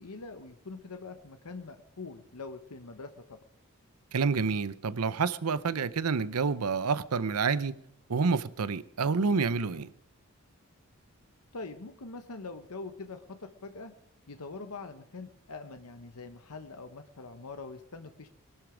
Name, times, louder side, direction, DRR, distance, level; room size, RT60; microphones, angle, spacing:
voice 1, 0.0-3.4 11.5-13.9 14.3-18.3, left 3 dB, 90° left, 1.1 m, -43 dB
voice 2, 4.1-7.7 8.1-9.9, right 5 dB, 90° right, 0.7 m, -28 dB
20.0 x 12.0 x 5.0 m
head